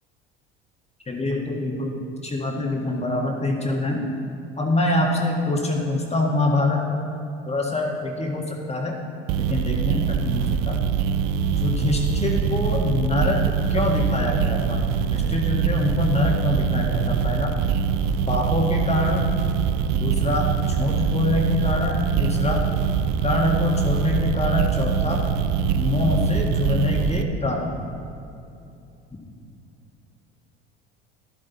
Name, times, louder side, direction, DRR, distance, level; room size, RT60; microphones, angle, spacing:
voice 1, 1.1-4.0 4.6-7.0 7.5-8.9 9.4-10.8 11.6-17.6 18.3-19.3 19.9-22.6 23.2-25.2 25.7-27.7, left 2 dB, 20° left, 0 dB, 1.7 m, -25 dB
sound 1, 9.3-27.2, right 7 dB, 65° right, 0.6 m, -23 dB
12.0 x 8.1 x 4.1 m, 2.6 s
hypercardioid pair, 70°, 30 cm